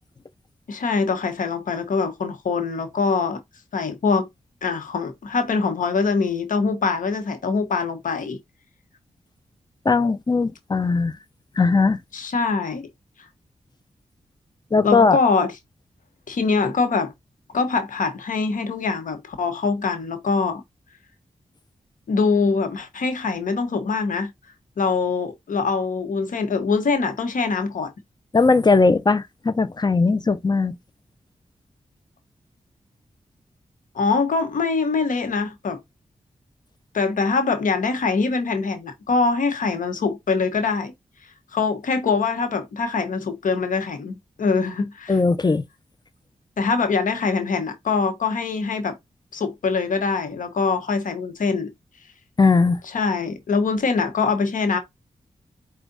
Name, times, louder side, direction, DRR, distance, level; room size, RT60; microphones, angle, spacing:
voice 1, 0.7-3.4 3.7-4.3 4.6-8.4 12.1-12.9 14.8-15.5 16.3-17.1 17.5-20.6 22.1-24.3 24.8-27.9 33.9-35.8 36.9-40.9 41.5-45.2 46.6-49.0 49.3-51.7 52.9-54.8, left 4 dB, 80° left, 1.1 m, -23 dB
voice 2, 9.8-11.2 11.6-12.0 14.7-15.2 28.3-30.8 45.1-45.6 52.4-52.8, left 4 dB, 30° left, 0.7 m, -18 dB
4.6 x 2.4 x 4.0 m
cardioid pair, 45°, 13 cm